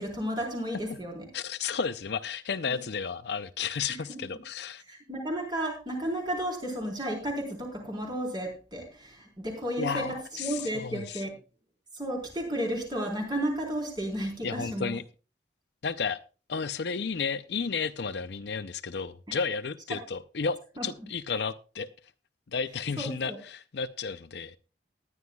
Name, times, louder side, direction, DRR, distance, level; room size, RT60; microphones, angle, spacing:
voice 1, 0.0-1.3 2.7-2.8 4.1-4.2 4.9-11.3 11.9-14.9 19.3-19.4 20.8-20.9 23.0-23.4, right 1 dB, 25° right, 1 dB, 4.1 m, -33 dB
voice 2, 1.3-4.8 9.8-11.2 14.4-15.0 15.8-16.2 16.5-21.9 22.5-24.6, left 5 dB, 60° left, 13 dB, 0.5 m, -32 dB
19.0 x 11.0 x 2.3 m, 0.34 s
head